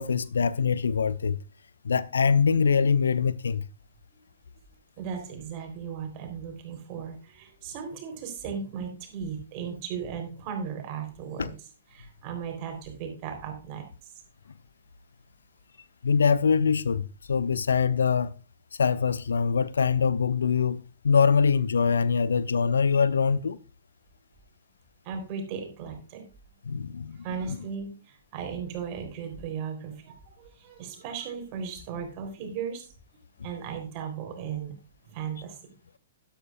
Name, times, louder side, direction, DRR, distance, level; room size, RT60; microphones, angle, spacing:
voice 1, 0.0-1.4 1.8-3.6 11.4-11.5 16.0-17.0 17.3-18.3 18.8-23.6 26.7-27.2, left 6 dB, 65° left, 0.5 m, -23 dB
voice 2, 5.0-11.5 11.9-14.1 25.0-26.2 27.1-32.9 33.4-34.7 35.1-35.6, right 7 dB, 35° right, 3.7 m, -36 dB
13.0 x 11.5 x 2.5 m
figure-of-eight pair, 110°, 0 cm